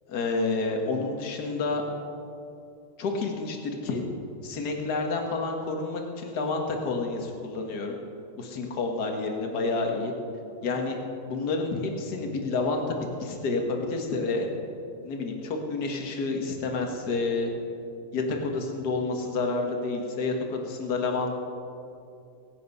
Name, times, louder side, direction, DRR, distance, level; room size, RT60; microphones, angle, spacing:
voice 1, 0.1-1.8 3.0-4.0 4.4-8.0 8.4-10.1 10.6-11.0 11.2-14.5 15.0-17.5 18.1-21.4, left 3 dB, 50° left, 2 dB, 2.0 m, -29 dB
23.5 x 8.6 x 5.5 m, 2.7 s
omnidirectional pair, 2.4 m